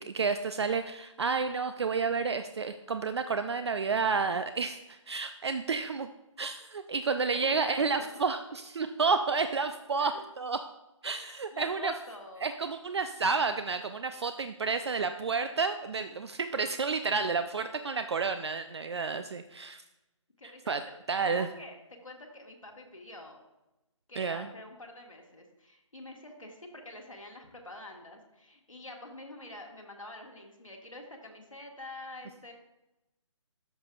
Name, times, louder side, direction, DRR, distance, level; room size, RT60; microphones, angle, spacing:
voice 1, 0.0-6.1 6.4-10.6 11.0-11.9 12.4-19.8 20.7-20.8 21.1-21.5 24.2-24.5, right 4 dB, 55° right, 9 dB, 0.4 m, -30 dB
voice 2, 6.9-8.2 10.0-10.2 11.0-12.6 20.4-20.7 21.2-21.8 22.0-23.4 24.1-32.5, left 2 dB, 80° left, 1 dB, 1.7 m, -46 dB
12.5 x 5.6 x 2.5 m, 0.95 s
figure-of-eight pair, 145°, 17 cm